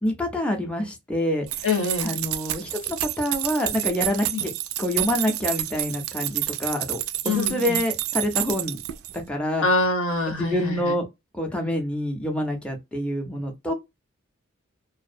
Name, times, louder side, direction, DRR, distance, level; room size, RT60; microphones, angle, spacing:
voice 1, 0.0-1.7 2.0-4.5 4.8-7.0 7.2-8.8 9.3-9.6 10.3-11.0 11.4-13.7, left 1 dB, 5° left, 0.4 m, -27 dB
sound 1, 1.5-9.2, right 14 dB, 85° right, 0.3 m, -29 dB
voice 2, 1.6-2.1 4.3-4.4 7.2-7.8 9.6-10.9, left 3 dB, 75° left, 0.8 m, -25 dB
2.4 x 2.0 x 2.5 m
head